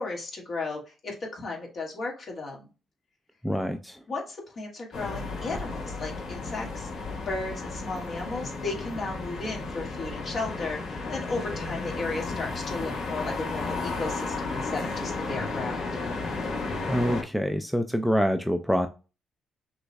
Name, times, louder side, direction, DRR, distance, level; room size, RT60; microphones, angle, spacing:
voice 1, 0.0-2.7 4.1-6.9 7.3-15.9, left 3 dB, 50° left, 0 dB, 1.8 m, -35 dB
voice 2, 3.4-4.0 16.9-18.9, equal, ahead, 7 dB, 0.4 m, -26 dB
sound 1, 4.9-17.2, left 3 dB, 75° left, 1.4 m, -33 dB
5.9 x 3.1 x 2.2 m, 0.33 s
cardioid pair, 90°, 0 cm